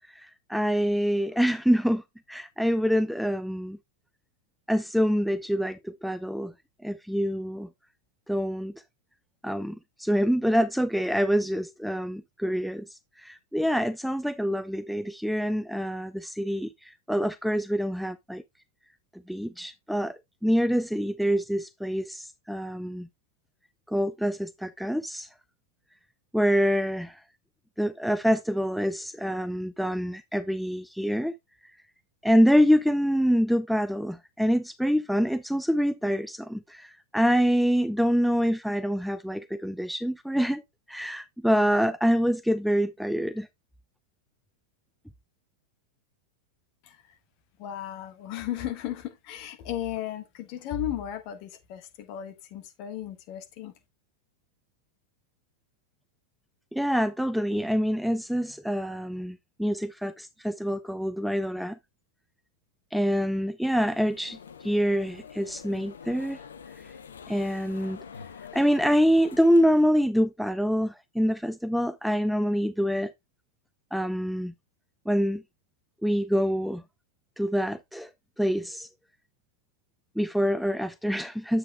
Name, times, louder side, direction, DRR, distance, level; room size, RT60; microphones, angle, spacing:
voice 1, 0.0-2.0 2.3-3.8 4.7-6.5 6.8-7.7 8.3-8.7 9.4-12.9 13.2-18.4 19.3-23.1 23.9-25.3 26.3-27.2 27.8-31.3 32.2-40.6 40.9-43.5 56.7-61.8 62.9-66.4 67.3-68.0 68.5-73.1 73.9-74.5 75.1-75.4 76.0-76.8 77.4-78.1 78.4-78.9 80.2-81.6, equal, ahead, 0.4 m, -26 dB
voice 2, 46.8-47.2 47.6-53.7, left 11 dB, 45° left, 1.5 m, -35 dB
sound 1, 63.8-69.8, left 7 dB, 70° left, 0.7 m, -46 dB
9.0 x 7.5 x 2.2 m
figure-of-eight pair, 90°, 0 cm